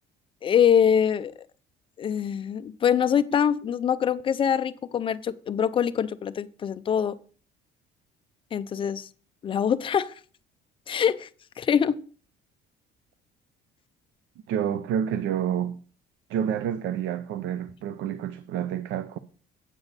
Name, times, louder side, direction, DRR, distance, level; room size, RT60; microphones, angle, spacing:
voice 1, 0.4-1.3 2.0-7.2 8.5-9.1 9.4-10.1 10.9-11.3 11.6-12.0, left 8 dB, 25° left, 0.3 m, -24 dB
voice 2, 14.5-15.8 16.3-19.2, right 9 dB, 70° right, 0.5 m, -28 dB
8.0 x 7.0 x 4.0 m
cardioid pair, 170°, 21 cm